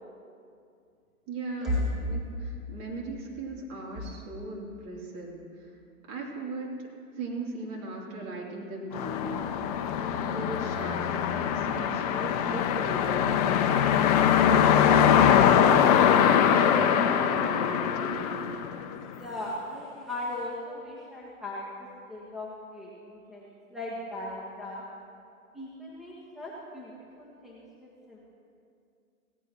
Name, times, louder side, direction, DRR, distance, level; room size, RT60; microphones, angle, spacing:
voice 1, 1.3-5.7 6.1-6.9 7.1-9.4 10.0-13.4 14.1-18.6, right 2 dB, 35° right, -3 dB, 3.1 m, -38 dB
sound 1, 8.9-19.2, left 8 dB, 30° left, 0.6 m, -23 dB
voice 2, 19.1-24.8 25.5-26.9 27.2-28.2, left 1 dB, ahead, -6 dB, 1.5 m, -37 dB
17.5 x 15.5 x 3.0 m, 2.4 s
hypercardioid pair, 125°, 42 cm